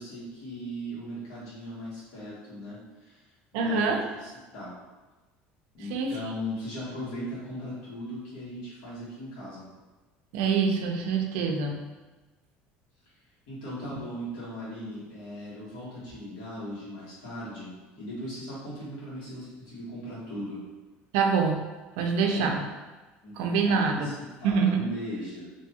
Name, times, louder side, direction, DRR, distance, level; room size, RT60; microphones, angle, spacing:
voice 1, 0.0-3.2 3.5-4.7 5.7-9.7 13.5-20.6 22.2-22.5 23.2-25.5, equal, 85° left, -8 dB, 1.4 m, -38 dB
voice 2, 3.5-4.0 5.9-6.1 10.3-11.8 13.9-14.0 21.1-21.6 22.0-22.6 23.4-24.1 24.4-24.8, right 5 dB, 80° right, 3 dB, 0.4 m, -25 dB
2.7 x 2.2 x 2.8 m, 1.2 s
cardioid pair, 145°, 4 cm